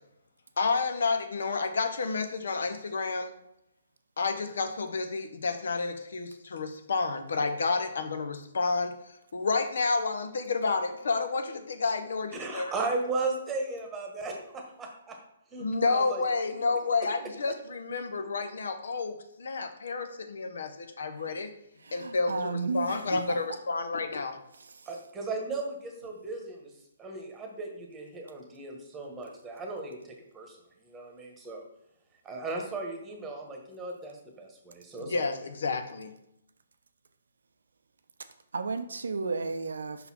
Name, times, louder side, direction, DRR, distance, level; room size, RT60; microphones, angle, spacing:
voice 1, 0.6-3.3 4.2-8.9 9.3-12.7 15.6-21.5 21.9-24.4 35.0-36.1, left 4 dB, 70° left, 8 dB, 0.7 m, -30 dB
voice 2, 12.3-15.2 15.5-16.2 24.9-26.6 27.0-30.0 30.3-30.6 30.9-31.7 32.2-35.2, right 3 dB, 15° right, 2 dB, 1.2 m, -36 dB
voice 3, 21.8-23.4 24.5-25.0 38.5-40.1, right 4 dB, 80° right, 9 dB, 0.5 m, -34 dB
5.5 x 4.1 x 4.3 m, 0.80 s
hypercardioid pair, 140°, 0 cm